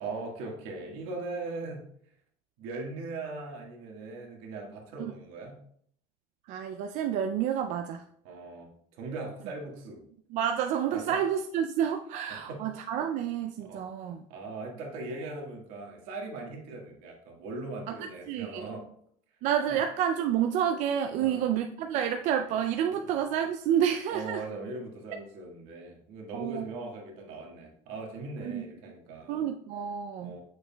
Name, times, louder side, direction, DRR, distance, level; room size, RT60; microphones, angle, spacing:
voice 1, 0.0-1.8 2.6-5.6 8.2-10.0 10.9-11.2 12.3-12.7 13.6-13.9 14.3-18.9 19.7-19.8 21.2-21.5 22.9-23.2 24.1-29.5 30.2-30.4, right 3 dB, 80° right, 0 dB, 1.7 m, -40 dB
voice 2, 6.5-8.0 10.3-14.2 17.9-18.0 18.3-18.7 19.4-24.4 26.3-26.7 28.4-28.6 29.3-30.4, right 9 dB, 50° right, 5 dB, 0.4 m, -29 dB
7.3 x 6.3 x 2.3 m, 0.65 s
cardioid pair, 155°, 16 cm